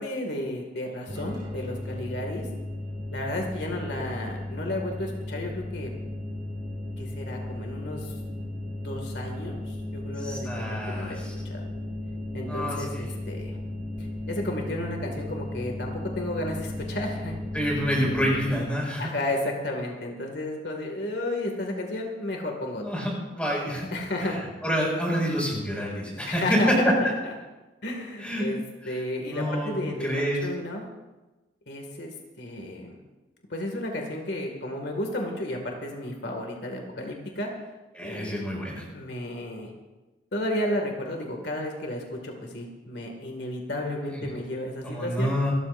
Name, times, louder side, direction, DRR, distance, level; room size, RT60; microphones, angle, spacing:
voice 1, 0.0-2.5 3.1-5.9 7.0-8.1 8.8-11.2 11.4-11.6 12.3-13.6 14.0-17.3 19.0-22.8 23.9-24.5 26.3-26.9 27.8-28.6 28.9-30.8 31.7-33.0 33.5-37.5 38.0-38.4 38.9-39.7 40.3-45.3, left 1 dB, 75° left, 2 dB, 2.2 m, -33 dB
sound 1, 1.1-18.5, left 1 dB, 25° right, 6.2 m, -35 dB
voice 2, 10.2-11.3 12.5-13.0 17.5-19.1 22.8-23.9 24.2-24.4 24.6-26.4 28.2-28.4 28.8-28.9 29.2-30.4 38.0-38.8 44.1-44.2 44.8-45.5, equal, 5° left, -3 dB, 6.1 m, -29 dB
28.0 x 13.5 x 2.6 m, 1.1 s
head